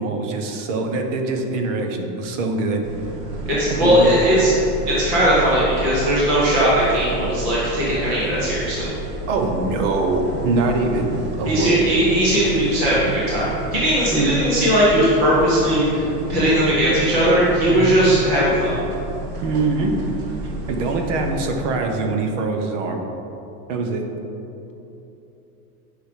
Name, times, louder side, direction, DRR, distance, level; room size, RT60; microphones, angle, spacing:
voice 1, 0.0-2.9 3.8-4.3 9.3-12.0 14.1-14.4 17.7-18.0 19.4-20.0 20.4-23.0 23.7-24.1, right 3 dB, 50° right, 4 dB, 1.0 m, -23 dB
sound 1, 2.8-21.3, right 2 dB, 65° right, 1.7 m, -31 dB
voice 2, 3.5-4.5 4.9-8.9 11.4-18.7, equal, 10° right, -8 dB, 0.3 m, -18 dB
9.6 x 5.0 x 5.0 m, 3.0 s
supercardioid pair, 165°, 49 cm